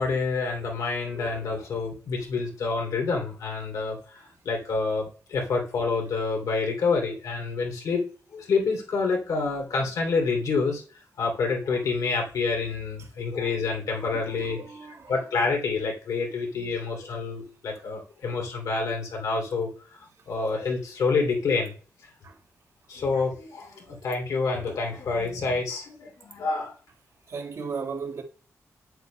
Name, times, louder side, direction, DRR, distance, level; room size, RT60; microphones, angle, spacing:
voice 1, 0.0-8.0 8.3-10.8 11.2-20.0 20.3-21.7 22.9-26.7, left 4 dB, 90° left, 2.8 m, -28 dB
voice 2, 14.1-15.1 22.2-22.4 23.1-23.2 23.8-23.9 27.3-28.2, right 5 dB, 60° right, 1.7 m, -36 dB
9.0 x 7.8 x 2.2 m
wide cardioid pair, 125°, 6 cm